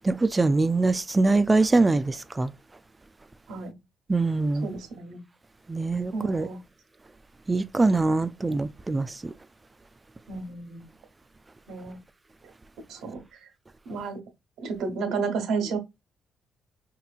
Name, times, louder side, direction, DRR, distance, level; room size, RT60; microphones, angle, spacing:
voice 1, 0.0-2.5 4.1-4.7 5.7-6.5 7.5-9.1, right 3 dB, 20° right, 0.3 m, -23 dB
voice 2, 4.6-5.2 6.1-6.6 10.3-10.8 11.7-12.0 12.9-13.2 13.9-14.2 14.6-15.8, right 4 dB, 80° right, 1.0 m, -31 dB
5.2 x 2.9 x 2.4 m
cardioid pair, 90°, 0 cm